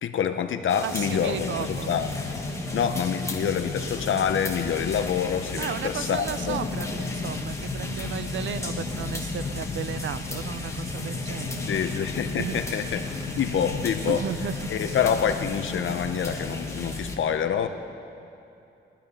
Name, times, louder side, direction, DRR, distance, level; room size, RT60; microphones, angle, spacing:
voice 1, 0.0-2.1 2.7-6.6 11.7-13.0 13.4-14.2 14.7-17.7, left 8 dB, 85° left, 8 dB, 0.9 m, -26 dB
sound 1, 0.7-17.2, left 2 dB, 15° left, 1.4 m, -37 dB
voice 2, 0.8-1.9 2.5-2.9 5.6-12.0 12.4-12.9 14.0-15.0, right 8 dB, 75° right, 13 dB, 0.6 m, -35 dB
sound 2, 0.9-17.2, left 3 dB, 65° left, 2.0 m, -34 dB
20.0 x 12.0 x 5.4 m, 2.7 s
wide cardioid pair, 170°, 20 cm